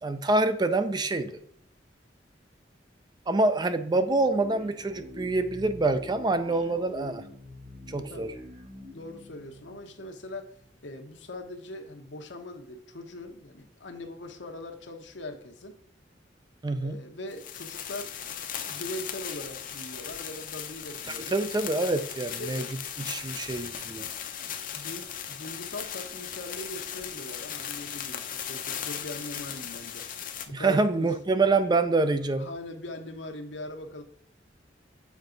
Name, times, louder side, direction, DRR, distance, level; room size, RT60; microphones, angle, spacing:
voice 1, 0.0-1.4 3.3-7.2 7.9-8.3 16.6-17.0 21.1-22.6 23.0-24.1 30.5-32.5, right 2 dB, 25° right, 10 dB, 0.4 m, -26 dB
sound 1, 3.7-10.9, left 1 dB, 40° right, 1.4 m, -46 dB
voice 2, 8.9-10.5 10.8-15.8 16.8-18.1 18.7-21.4 22.4-22.8 24.4-30.0 30.5-31.1 32.4-34.0, left 1 dB, 75° left, 5 dB, 1.0 m, -41 dB
sound 2, 17.3-30.5, left 9 dB, 50° left, 0.6 m, -37 dB
7.3 x 4.7 x 3.9 m, 0.65 s
head